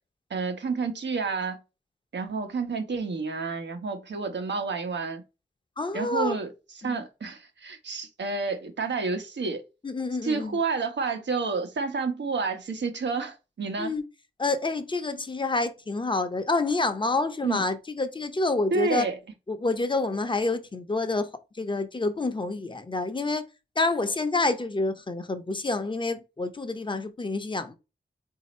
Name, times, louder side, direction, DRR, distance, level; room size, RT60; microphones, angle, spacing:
voice 1, 0.3-1.6 2.1-5.2 5.9-6.5 6.8-9.6 10.2-13.9 17.4-17.6 18.7-19.2, right 4 dB, 90° right, 1.0 m, -29 dB
voice 2, 5.8-6.4 6.8-7.0 9.8-10.6 13.8-14.0 14.4-19.1 19.5-23.5 23.8-27.7, left 3 dB, 25° left, 0.7 m, -28 dB
4.0 x 2.8 x 4.2 m
wide cardioid pair, 95°, 18 cm